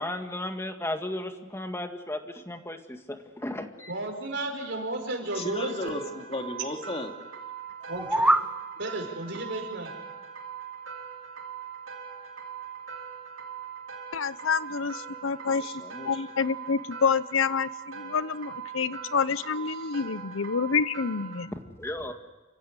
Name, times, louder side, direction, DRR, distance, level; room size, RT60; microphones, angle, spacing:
voice 1, 0.0-3.9 21.5-22.1, left 1 dB, 15° left, 5 dB, 1.9 m, -35 dB
voice 2, 3.9-6.2 7.9-8.3 8.8-10.0, right 2 dB, 60° right, 3 dB, 5.4 m, -34 dB
voice 3, 5.3-7.1 15.5-16.2 19.7-20.0, left 2 dB, 30° left, 3 dB, 2.5 m, -36 dB
sound 1, 5.3-21.5, right 7 dB, 90° right, 3.8 m, -41 dB
sound 2, 7.8-8.5, right 1 dB, 5° right, 0.8 m, -23 dB
voice 4, 14.1-15.7 16.0-21.5, left 5 dB, 90° left, 16 dB, 0.8 m, -28 dB
28.5 x 16.0 x 9.8 m, 1.2 s
head